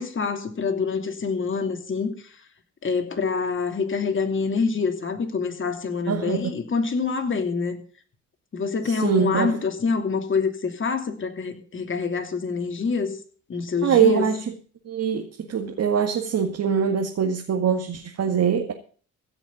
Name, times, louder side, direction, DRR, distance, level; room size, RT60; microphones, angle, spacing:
voice 1, 0.0-2.1 2.8-7.8 8.5-13.2 13.5-14.3, left 5 dB, 40° left, 2.9 m, -26 dB
voice 2, 6.1-6.5 8.8-9.5 13.8-14.6 14.9-18.7, right 7 dB, 55° right, 2.1 m, -23 dB
16.0 x 6.2 x 9.5 m
cardioid pair, 90°, 30 cm